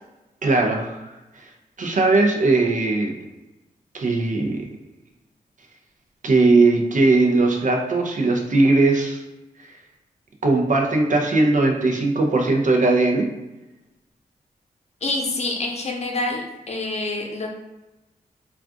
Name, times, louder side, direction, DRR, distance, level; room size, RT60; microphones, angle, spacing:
voice 1, 0.4-1.0 1.8-3.1 3.9-4.6 6.2-9.2 10.4-13.3, right 3 dB, 55° right, 1 dB, 0.7 m, -19 dB
voice 2, 15.0-17.5, left 2 dB, 45° left, 1 dB, 0.7 m, -27 dB
2.4 x 2.3 x 3.6 m, 1.0 s
cardioid pair, 55°, 16 cm